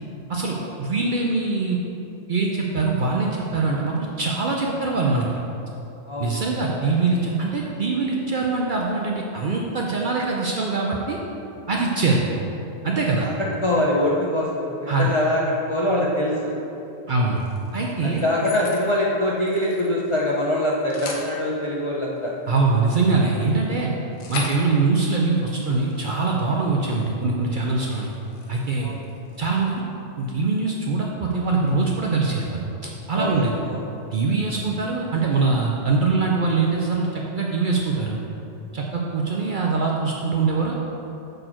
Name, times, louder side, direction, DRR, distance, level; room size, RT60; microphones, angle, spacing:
voice 1, 0.3-1.8 2.3-5.3 6.2-11.2 11.7-12.2 12.8-13.3 14.9-15.1 17.1-17.4 17.7-18.2 22.5-23.9 24.3-28.1 28.5-28.9 29.4-29.8 30.2-32.6 33.1-33.6 34.1-38.2 38.7-40.7, right 3 dB, 55° right, -2 dB, 0.5 m, -23 dB
voice 2, 13.2-16.5 18.0-22.3 28.8-29.0 33.2-33.8, left 1 dB, 45° left, -4 dB, 0.3 m, -23 dB
sound 1, 17.4-18.9 19.2-20.4 20.7-21.3 22.2-27.2 27.5-27.7 28.0-29.6, left 3 dB, 85° left, 1.2 m, -39 dB
6.5 x 4.3 x 4.4 m, 2.9 s
omnidirectional pair, 1.3 m